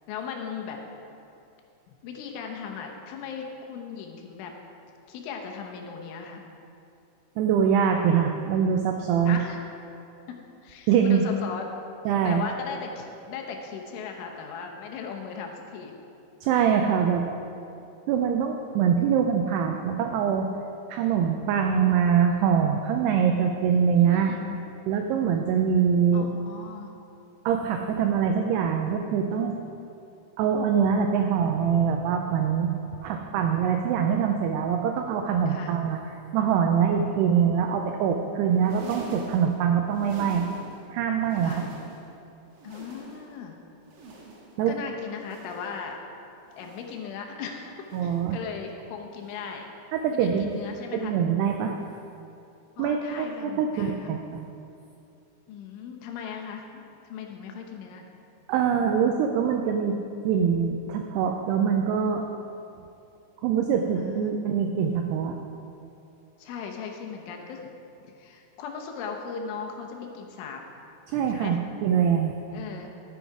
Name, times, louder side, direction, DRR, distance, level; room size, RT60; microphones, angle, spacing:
voice 1, 0.1-0.8 2.0-4.5 5.1-6.4 9.3-9.6 10.3-10.4 10.6-11.7 12.3-16.0 23.7-24.5 26.1-26.9 33.4-33.6 35.5-35.8 41.4-41.7 42.6-43.6 44.7-46.0 46.5-49.7 50.1-51.2 52.8-54.1 55.5-56.6 57.1-58.1 64.0-64.3 66.4-67.7 68.0-70.6 71.3-71.6 72.5-72.9, left 6 dB, 85° left, 2 dB, 3.5 m, -38 dB
voice 2, 7.4-9.4 10.9-11.2 12.1-12.4 16.4-17.3 18.1-20.5 20.9-24.3 24.9-26.3 27.5-29.6 30.4-32.7 33.0-36.0 36.3-40.5 40.9-41.6 44.6-44.7 47.9-48.4 49.9-50.6 50.9-51.7 52.8-54.4 58.5-60.0 60.3-62.2 63.4-65.4 71.1-72.3, right 7 dB, 90° right, 4 dB, 2.3 m, -24 dB
sound 1, 38.5-40.9 41.2-42.2 42.5-43.4 43.8-44.7 45.1-45.9 46.4-47.1 47.8-48.4 49.1-49.6 50.4-50.9 51.8-52.1 53.1-53.3 54.4-54.5, right 3 dB, 65° right, 2.2 m, -45 dB
13.0 x 8.0 x 4.7 m, 2.7 s
omnidirectional pair, 5.4 m